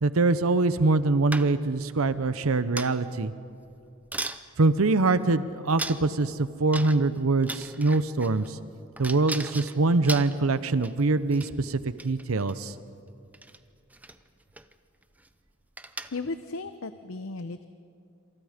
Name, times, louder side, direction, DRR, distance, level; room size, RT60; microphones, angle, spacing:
voice 1, 0.0-3.3 4.6-8.6 9.0-12.7, right 3 dB, 85° right, 13 dB, 0.8 m, -24 dB
sound 1, 1.3-1.8 2.8-3.2 3.7-3.8 4.1-4.4 5.2-5.3 5.8-6.2 6.7-7.2 7.4-8.5 9.0-11.0 11.3-11.5 11.9-12.6 13.3-13.6 13.9-14.2 14.5-14.7 15.0-15.3 15.8-16.3, right 2 dB, 5° right, 0.6 m, -37 dB
voice 2, 16.1-17.7, left 3 dB, 75° left, 10 dB, 0.8 m, -35 dB
27.5 x 27.0 x 5.1 m, 2.5 s
head